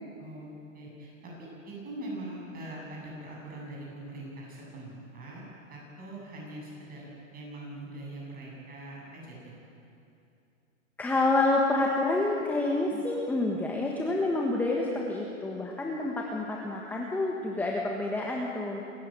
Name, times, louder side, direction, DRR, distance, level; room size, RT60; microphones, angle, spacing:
voice 1, 0.2-9.5, right 1 dB, 20° right, -3 dB, 7.9 m, -42 dB
voice 2, 11.0-18.8, left 2 dB, 5° left, -1 dB, 1.4 m, -28 dB
27.5 x 14.5 x 9.1 m, 2.7 s
hypercardioid pair, 145°, 41 cm